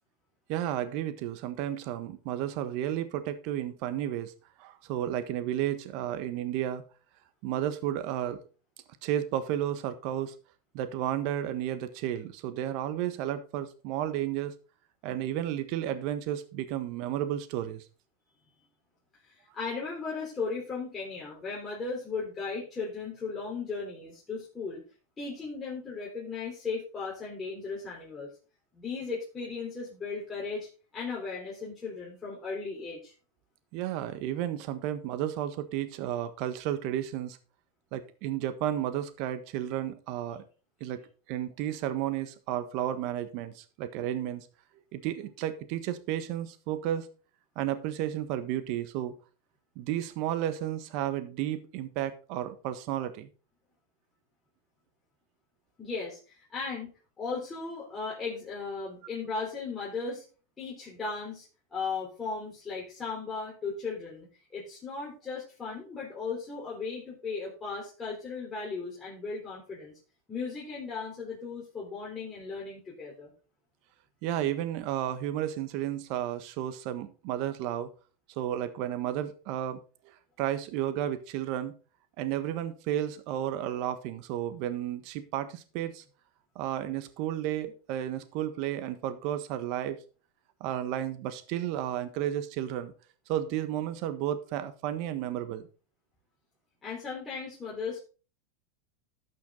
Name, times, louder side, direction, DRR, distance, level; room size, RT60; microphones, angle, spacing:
voice 1, 0.5-4.3 4.6-6.8 7.4-8.4 9.0-10.3 10.7-14.5 15.0-17.8 33.7-37.4 37.9-40.4 40.8-41.0 41.3-44.5 44.9-47.1 47.5-49.1 49.7-53.3 74.2-77.9 78.4-79.8 80.4-81.7 82.2-86.0 86.5-90.0 90.6-92.9 93.3-95.6, right 11 dB, 55° right, 10 dB, 1.4 m, -32 dB
voice 2, 19.2-24.8 25.2-28.3 28.7-33.1 55.8-56.9 57.2-60.2 60.6-69.9 70.3-73.3 96.8-98.0, left 4 dB, 20° left, -5 dB, 3.8 m, -36 dB
12.0 x 6.2 x 3.9 m, 0.36 s
hypercardioid pair, 115°, 0 cm